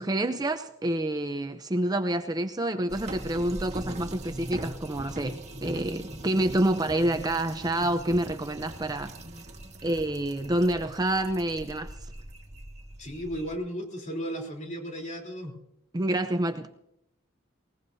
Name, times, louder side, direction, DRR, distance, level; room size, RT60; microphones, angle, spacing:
voice 1, 0.0-9.1 9.8-11.9 15.9-16.7, right 1 dB, 20° right, 0.6 m, -28 dB
sound 1, 2.9-13.6, right 1 dB, 35° right, 1.7 m, -41 dB
voice 2, 13.0-15.6, equal, 35° left, 3.6 m, -35 dB
20.5 x 19.5 x 2.7 m
head